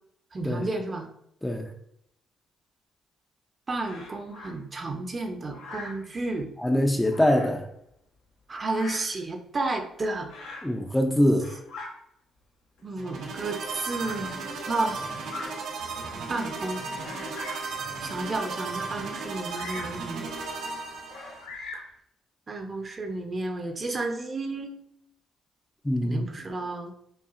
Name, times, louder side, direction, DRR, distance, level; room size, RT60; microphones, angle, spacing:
voice 1, 0.3-1.1 3.7-6.5 8.5-10.3 12.8-15.1 16.3-16.8 18.0-20.3 22.5-24.8 26.0-26.9, right 2 dB, 35° right, 4 dB, 0.6 m, -32 dB
Bird vocalization bird call bird song, 3.8-4.5 5.5-6.1 7.0-7.6 8.6-9.2 10.3-10.7 11.3-11.9 12.8-12.9 13.9-14.2 15.2-15.5 16.1-16.2 17.0-17.7 19.5-20.0 21.1-22.0, left 2 dB, 85° left, 1.0 m, -41 dB
voice 2, 6.6-7.7 10.6-11.5 25.8-26.3, left 1 dB, 10° left, 3 dB, 0.5 m, -23 dB
sound 1, 12.9-21.5, right 4 dB, 80° right, 0.8 m, -35 dB
5.5 x 2.3 x 2.5 m, 0.74 s
cardioid pair, 90°, 0 cm